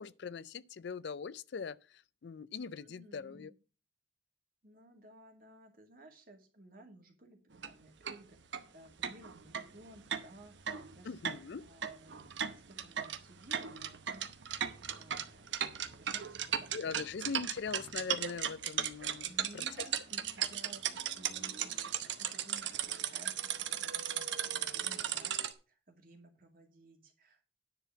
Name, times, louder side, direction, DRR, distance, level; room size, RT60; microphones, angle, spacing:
voice 1, 0.0-3.5 11.0-11.6 16.7-19.6, left 5 dB, 65° left, 0.4 m, -41 dB
voice 2, 2.8-3.5 4.6-7.4 7.6-11.2 11.6-14.3 14.9-16.9 19.2-27.5, right 1 dB, 45° right, 2.3 m, -57 dB
sound 1, 7.5-7.7 8.0-8.2 8.5-8.6 9.0-25.5, right 9 dB, 70° right, 0.9 m, -37 dB
10.0 x 4.5 x 6.9 m
head